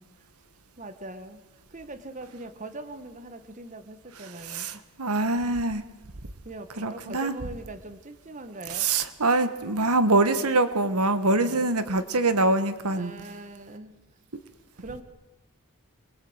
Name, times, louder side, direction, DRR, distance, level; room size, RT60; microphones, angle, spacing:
voice 1, 0.8-4.8 6.4-8.9 11.3-11.6 12.8-13.9 14.8-15.0, right 2 dB, 35° right, 10 dB, 1.5 m, -41 dB
voice 2, 4.5-5.8 6.8-7.3 8.7-13.1, right 2 dB, 90° right, 11 dB, 1.6 m, -24 dB
27.0 x 21.5 x 8.1 m, 1.1 s
head